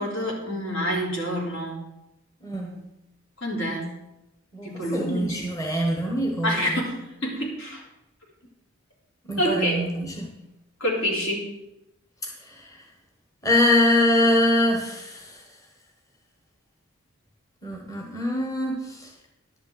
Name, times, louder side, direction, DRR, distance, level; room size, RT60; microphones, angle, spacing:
voice 1, 0.0-1.8 3.4-3.9 4.6-5.5 6.4-7.8 9.4-9.8 10.8-11.5, equal, 70° left, -2 dB, 3.3 m, -27 dB
voice 2, 2.4-2.8 4.5-6.9 9.3-10.3 12.2-12.8 13.4-15.4 17.6-19.1, left 1 dB, 15° left, 0 dB, 1.4 m, -24 dB
11.0 x 5.6 x 8.0 m, 0.89 s
head